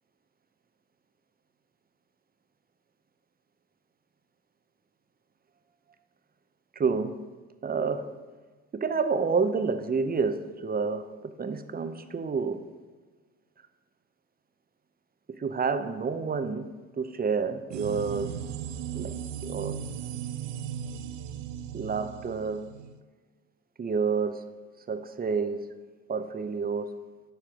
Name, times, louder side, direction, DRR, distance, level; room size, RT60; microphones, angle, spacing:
voice 1, 6.8-7.2 7.6-8.1 8.7-12.7 15.4-16.7 17.0-18.3 18.9-19.1 19.4-19.8 21.7-22.7 23.8-24.5 24.9-25.7 26.1-26.9, right 5 dB, 25° right, 9 dB, 0.7 m, -29 dB
sound 1, 17.7-23.0, right 9 dB, 70° right, 0.5 m, -37 dB
12.0 x 4.3 x 3.7 m, 1.4 s
hypercardioid pair, 50°, 34 cm